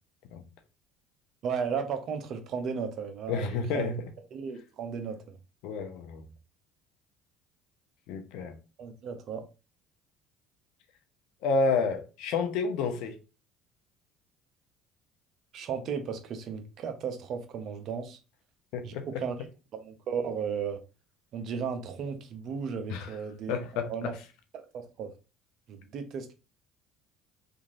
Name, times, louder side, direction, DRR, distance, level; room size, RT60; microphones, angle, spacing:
voice 1, 1.4-3.9 4.3-5.2 8.8-9.4 15.5-18.2 18.8-19.4 19.7-20.8 21.3-23.5 23.8-24.1 24.5-25.1 25.7-26.3, right 6 dB, 55° right, 0.6 m, -35 dB
voice 2, 3.3-4.0 5.6-6.2 8.1-8.5 11.4-13.2 18.7-19.2 22.9-23.1 23.5-24.2, left 4 dB, 70° left, 0.5 m, -30 dB
3.0 x 2.5 x 2.5 m
hypercardioid pair, 70°, 0 cm